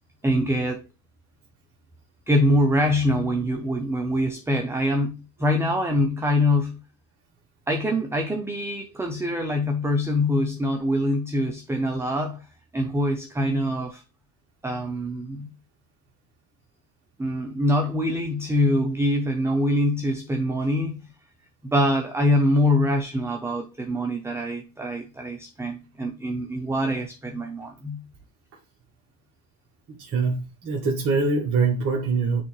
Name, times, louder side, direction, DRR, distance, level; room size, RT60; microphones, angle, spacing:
voice 1, 0.2-0.9 2.3-6.8 7.7-12.5 12.7-14.0 14.6-15.5 17.2-21.0 21.6-28.0, left 1 dB, 5° right, 0.6 m, -24 dB
voice 2, 29.9-32.4, right 4 dB, 30° right, 1.6 m, -24 dB
9.7 x 3.4 x 3.2 m
supercardioid pair, 110°, 46 cm